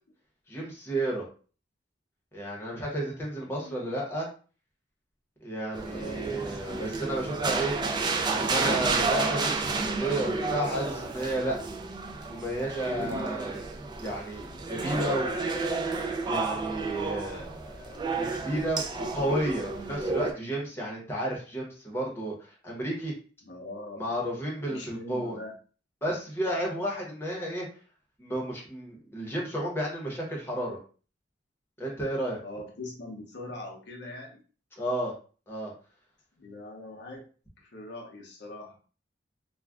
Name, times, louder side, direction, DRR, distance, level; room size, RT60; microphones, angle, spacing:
voice 1, 0.5-1.3 2.3-4.3 5.4-7.7 8.3-11.6 12.2-13.6 14.0-15.3 16.2-22.3 22.6-23.1 24.0-25.4 26.0-27.7 28.2-30.8 31.8-32.4 34.8-35.1 35.5-35.7, right 1 dB, 15° left, -3 dB, 0.8 m, -32 dB
voice 2, 3.4-3.9 5.9-6.2 14.5-14.7 23.4-24.1 24.6-25.6 32.4-34.4 36.4-37.3 37.6-38.8, left 2 dB, 65° left, 0 dB, 0.6 m, -42 dB
sound 1, 5.7-20.3, right 3 dB, 25° right, 0.3 m, -31 dB
2.4 x 2.1 x 3.4 m, 0.39 s
head